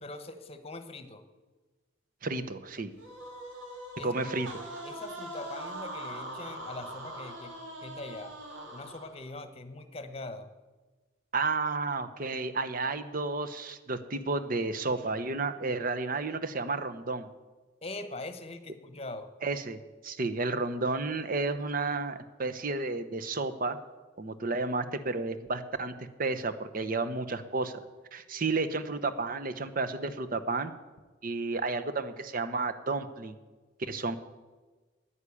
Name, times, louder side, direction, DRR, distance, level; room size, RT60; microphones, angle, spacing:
voice 1, 0.0-1.2 4.0-4.1 4.8-8.3 8.7-10.5 17.8-19.3, left 2 dB, 30° left, 10 dB, 1.0 m, -42 dB
voice 2, 2.2-2.9 4.0-4.5 11.3-17.3 19.4-19.8 20.0-23.8 24.2-27.8 28.1-30.7 31.2-33.4 33.8-34.2, right 3 dB, 45° right, 11 dB, 0.9 m, -32 dB
sound 1, 3.0-9.3, right 1 dB, 85° right, 2.5 m, -42 dB
10.0 x 9.7 x 8.4 m, 1.3 s
head